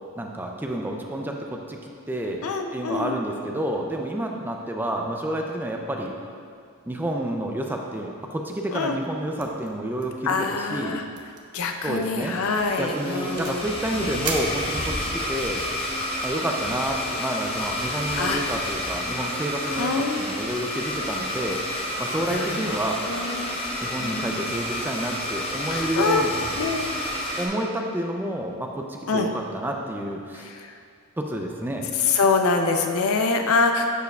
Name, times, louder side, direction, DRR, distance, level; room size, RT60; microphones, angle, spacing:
voice 1, 0.2-2.5 2.7-6.1 6.9-11.0 11.8-12.4 12.8-15.6 16.2-21.6 22.0-23.0 23.8-26.3 27.4-30.5 31.2-31.9, right 1 dB, 10° right, 1 dB, 0.4 m, -29 dB
voice 2, 2.4-3.2 8.7-9.0 9.4-9.5 10.2-11.0 11.5-13.6 13.9-14.3 18.1-18.4 19.8-20.2 22.3-24.5 25.7-26.3 26.6-26.9 29.1-29.3 30.4-30.7 32.0-33.8, left 4 dB, 65° left, 4 dB, 0.5 m, -25 dB
sound 1, 9.4-9.7 10.0-10.3 10.5-10.6 11.1-11.4 11.8-12.1 12.6-13.7 14.2-15.2, right 4 dB, 85° right, 0.8 m, -35 dB
Domestic sounds home sounds, 12.2-27.5, left 1 dB, 25° left, 0.8 m, -30 dB
11.5 x 4.6 x 2.3 m, 2.3 s
head